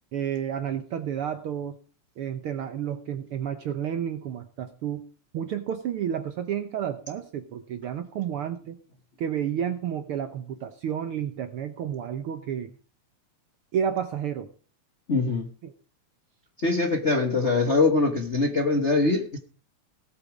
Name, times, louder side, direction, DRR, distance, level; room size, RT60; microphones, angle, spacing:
voice 1, 0.1-1.8 2.2-5.0 5.3-8.8 9.2-12.7 13.7-14.5 15.6-15.7, right 9 dB, 65° right, 8 dB, 1.5 m, -31 dB
voice 2, 15.1-15.5 16.6-19.4, left 3 dB, 40° left, 3 dB, 1.0 m, -23 dB
18.5 x 8.5 x 4.9 m, 0.38 s
omnidirectional pair, 3.3 m